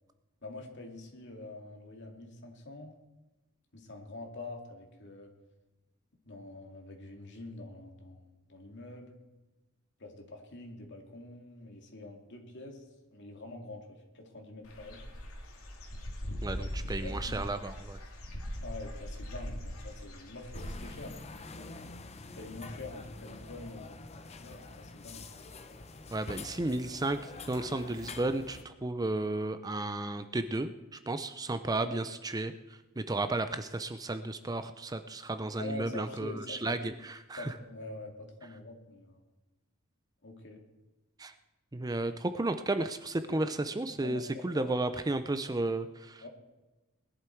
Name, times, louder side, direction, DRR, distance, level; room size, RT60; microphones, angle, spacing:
voice 1, 0.4-2.9 3.7-5.3 6.2-9.2 10.0-12.8 13.1-15.1 16.5-16.7 17.0-17.4 18.6-21.8 22.3-25.2 31.8-32.0 35.6-36.8 37.4-39.2 40.2-40.6 43.3-43.4 44.0-44.7 46.2-46.3, left 2 dB, 55° left, 2 dB, 2.5 m, -45 dB
Dog / Bird, 14.6-20.9, equal, 80° left, 2.7 m, -40 dB
voice 2, 16.4-18.0 26.1-32.5 33.0-37.5 41.2-41.3 41.7-46.2, right 2 dB, 15° right, 10 dB, 0.5 m, -33 dB
sound 1, 20.5-28.6, left 3 dB, 30° left, 0.8 m, -46 dB
20.0 x 11.5 x 4.6 m, 1.1 s
head